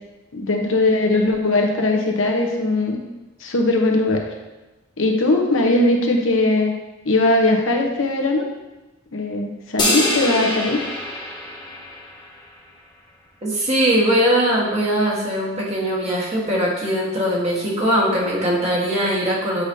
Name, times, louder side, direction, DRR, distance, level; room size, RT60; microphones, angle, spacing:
voice 1, 0.3-3.0 3.4-4.2 5.0-6.7 7.0-8.4 9.1-10.8, left 2 dB, 85° left, 2 dB, 0.9 m, -19 dB
sound 1, 9.8-12.3, left 1 dB, 25° left, 1.2 m, -24 dB
voice 2, 13.4-19.6, equal, 35° right, -5 dB, 1.4 m, -20 dB
8.0 x 5.0 x 2.7 m, 1.1 s
head